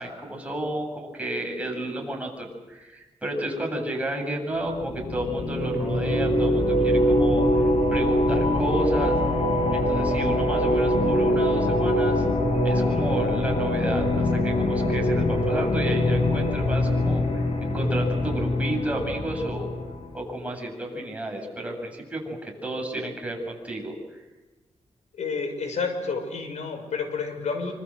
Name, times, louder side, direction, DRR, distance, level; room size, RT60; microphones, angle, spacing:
voice 1, 0.0-7.5 7.9-9.2 9.7-12.2 12.6-19.7 20.1-24.2, right 1 dB, 10° right, 1 dB, 7.9 m, -31 dB
sound 1, 4.7-20.1, left 1 dB, 65° left, 6.2 m, -23 dB
voice 2, 25.1-27.7, left 4 dB, 90° left, 6 dB, 6.0 m, -30 dB
27.5 x 25.0 x 8.0 m, 1.1 s
wide cardioid pair, 115°, 12 cm